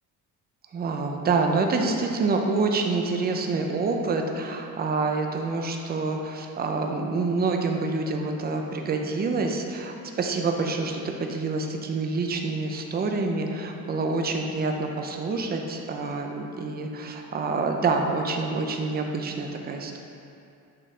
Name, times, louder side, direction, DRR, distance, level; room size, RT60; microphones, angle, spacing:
voice 1, 0.7-20.0, right 3 dB, 25° right, 3 dB, 0.5 m, -27 dB
7.7 x 3.3 x 3.7 m, 2.6 s
cardioid pair, 120°, 36 cm